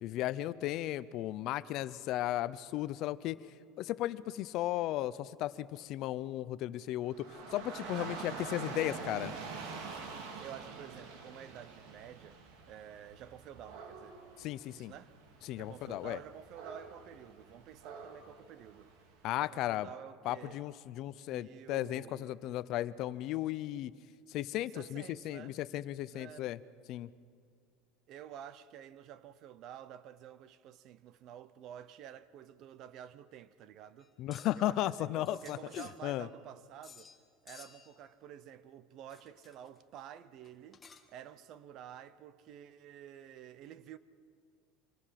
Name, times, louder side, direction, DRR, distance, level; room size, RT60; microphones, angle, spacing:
voice 1, 0.0-3.4 3.8-9.3 14.4-14.9 15.4-16.2 19.2-19.9 20.3-23.9 24.3-26.6 26.9-27.1 34.2-36.3, left 14 dB, 45° left, 0.5 m, -35 dB
Dog / Rain, 7.1-19.2, right 4 dB, 65° right, 2.5 m, -46 dB
voice 2, 7.9-8.2 10.4-12.4 12.7-14.2 14.7-15.1 15.6-18.9 19.4-20.6 21.3-22.4 24.7-25.6 26.1-26.5 28.1-34.1 34.6-37.1 37.4-40.8 41.1-44.0, right 10 dB, 40° right, 0.6 m, -50 dB
sound 1, 34.0-34.7 35.3-36.4 36.8-37.2 37.5-38.0 39.1-39.8 40.4-41.3, left 5 dB, 15° left, 1.1 m, -56 dB
25.5 x 19.0 x 5.8 m
cardioid pair, 170°, 0 cm